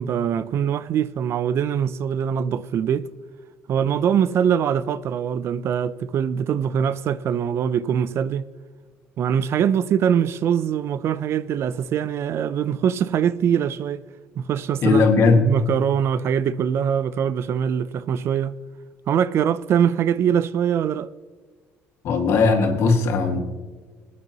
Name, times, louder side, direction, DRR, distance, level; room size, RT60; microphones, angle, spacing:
voice 1, 0.0-3.1 3.7-8.5 9.2-14.0 14.4-15.1 15.5-18.5 19.1-21.1, right 8 dB, 55° right, 0.5 m, -23 dB
voice 2, 14.8-15.4 22.0-23.4, left 4 dB, 65° left, 2.0 m, -18 dB
22.0 x 9.5 x 3.0 m
cardioid pair, 115°, 5 cm